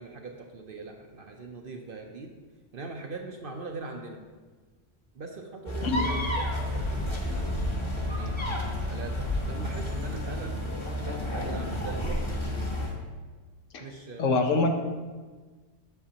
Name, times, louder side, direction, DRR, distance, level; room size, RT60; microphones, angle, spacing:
voice 1, 0.0-2.3 2.7-4.2 5.1-6.3 6.7-7.6 8.1-8.4 8.9-10.6 11.3-12.4 13.8-14.4, right 3 dB, 55° right, 3 dB, 0.8 m, -41 dB
sound 1, 5.7-12.9, left 1 dB, 25° left, 1.1 m, -30 dB
voice 2, 14.2-14.7, left 3 dB, 80° left, 4 dB, 1.2 m, -24 dB
8.0 x 7.5 x 2.8 m, 1.4 s
omnidirectional pair, 1.3 m